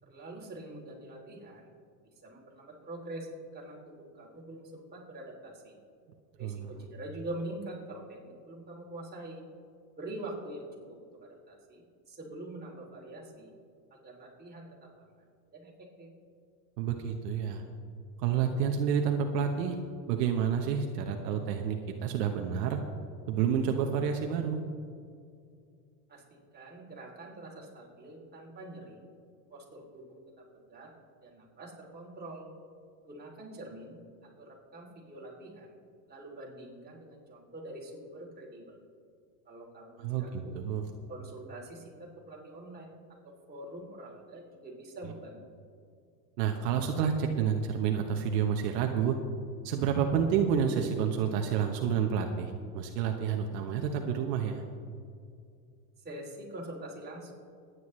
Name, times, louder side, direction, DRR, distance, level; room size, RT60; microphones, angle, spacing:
voice 1, 0.0-1.7 2.2-5.7 6.4-9.4 10.0-10.7 11.0-13.5 13.9-14.9 15.2-15.3 15.5-16.1 26.1-26.2 26.5-29.0 29.5-30.1 30.7-30.9 31.2-32.4 33.1-35.7 36.1-38.8 39.4-40.5 41.1-42.9 43.5-45.4 56.0-57.3, right 1 dB, 20° right, -2 dB, 3.0 m, -45 dB
voice 2, 6.4-6.7 16.8-17.6 18.2-19.8 20.1-22.8 23.3-24.6 40.0-40.9 46.4-49.2 49.6-54.6, right 7 dB, 75° right, 4 dB, 1.2 m, -29 dB
22.0 x 9.5 x 3.2 m, 2.3 s
supercardioid pair, 120°, 49 cm